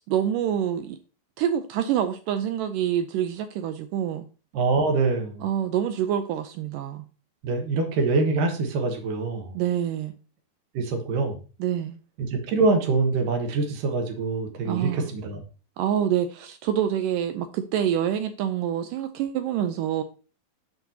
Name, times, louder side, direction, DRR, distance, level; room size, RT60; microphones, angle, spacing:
voice 1, 0.1-1.0 1.4-4.3 5.4-7.0 9.5-10.1 11.6-12.0 14.7-15.1 15.8-20.0, right 10 dB, 85° right, 1.9 m, -26 dB
voice 2, 4.5-5.4 7.4-9.5 10.7-11.4 12.2-15.4, right 3 dB, 70° right, 2.7 m, -24 dB
8.1 x 6.6 x 2.8 m
omnidirectional pair, 4.3 m